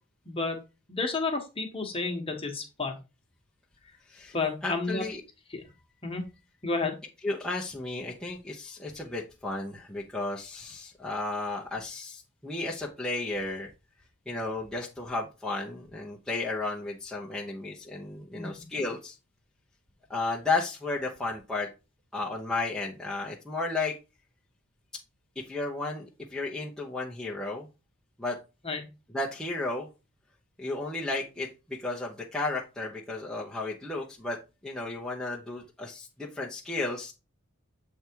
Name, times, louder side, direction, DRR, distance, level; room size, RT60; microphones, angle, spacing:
voice 1, 0.3-0.6 0.9-3.0 4.3-5.1 5.5-5.6 6.0-6.2 6.6-7.0 18.3-18.6 28.6-28.9, left 3 dB, 25° left, 3 dB, 1.2 m, -31 dB
voice 2, 4.6-5.2 7.2-13.7 14.3-19.1 20.1-21.7 22.1-24.0 25.4-27.7 28.2-28.4 29.1-29.9 30.6-34.4 34.6-37.1, left 3 dB, ahead, -5 dB, 0.8 m, -33 dB
8.1 x 3.5 x 4.5 m, 0.29 s
head